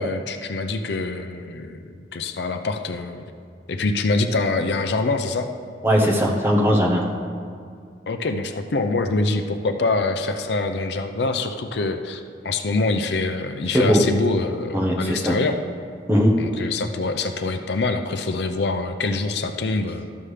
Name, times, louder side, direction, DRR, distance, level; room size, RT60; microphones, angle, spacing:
voice 1, 0.0-1.8 2.1-3.2 3.7-5.5 8.1-15.6 16.4-20.1, left 3 dB, 65° left, 7 dB, 0.5 m, -25 dB
voice 2, 5.8-7.0 13.7-14.0 14.7-15.4 16.1-16.3, equal, 10° right, -2 dB, 1.0 m, -19 dB
13.0 x 7.1 x 3.3 m, 2.2 s
head